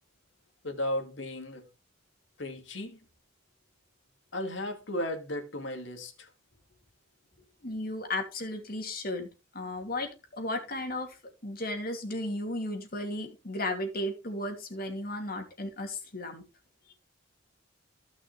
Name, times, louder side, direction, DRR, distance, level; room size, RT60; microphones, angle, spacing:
voice 1, 0.6-1.7 2.4-3.0 4.3-6.3, left 1 dB, 65° left, 2.5 m, -35 dB
voice 2, 7.6-11.2 11.4-16.4, left 1 dB, 50° left, 2.8 m, -35 dB
16.0 x 6.0 x 3.3 m
head